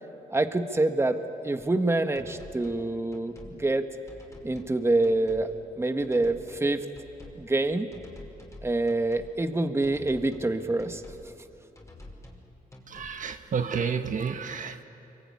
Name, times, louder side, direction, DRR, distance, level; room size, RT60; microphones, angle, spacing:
voice 1, 0.3-1.2 1.4-3.8 4.4-5.5 5.8-6.8 7.4-7.9 8.6-11.0, right 2 dB, 15° right, 7 dB, 1.5 m, -26 dB
sound 1, 2.2-2.8 3.1-3.6 4.1-4.8 5.0-5.5 6.0-6.7 6.9-7.4 7.9-9.3 9.8-10.5 10.8-11.3 11.8-12.4 12.7-13.2, left 1 dB, 20° left, 5.4 m, -48 dB
voice 2, 12.9-14.8, right 6 dB, 55° right, 7 dB, 1.4 m, -30 dB
25.0 x 24.0 x 9.7 m, 2.9 s
cardioid pair, 85°, 16 cm